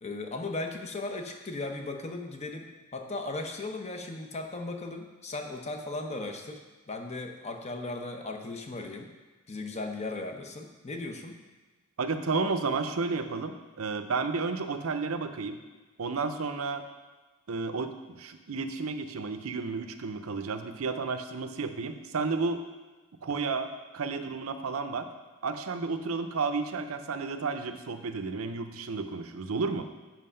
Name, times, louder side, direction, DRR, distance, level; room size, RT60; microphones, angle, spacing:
voice 1, 0.0-6.6 6.9-9.1 9.5-11.4, left 2 dB, 30° left, 4 dB, 0.8 m, -37 dB
voice 2, 12.0-15.6 16.0-16.8 17.5-22.6 23.2-23.7 23.9-25.1 25.4-29.8, right 4 dB, 80° right, 9 dB, 0.6 m, -32 dB
7.6 x 5.7 x 5.6 m, 1.3 s
head